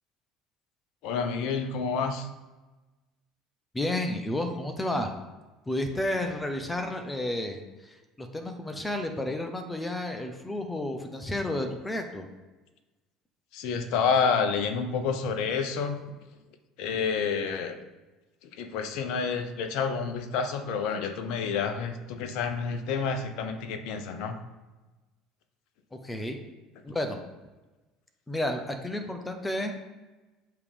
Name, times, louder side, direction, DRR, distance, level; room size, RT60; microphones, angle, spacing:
voice 1, 1.0-2.3 13.5-16.0 16.8-17.8 18.4-24.4, left 5 dB, 60° left, 8 dB, 0.7 m, -29 dB
voice 2, 3.7-5.1 5.7-12.3 25.9-26.4 26.8-27.2 28.3-29.7, left 1 dB, 15° left, 5 dB, 0.9 m, -31 dB
6.9 x 3.3 x 5.3 m, 1.2 s
figure-of-eight pair, 65°, 0 cm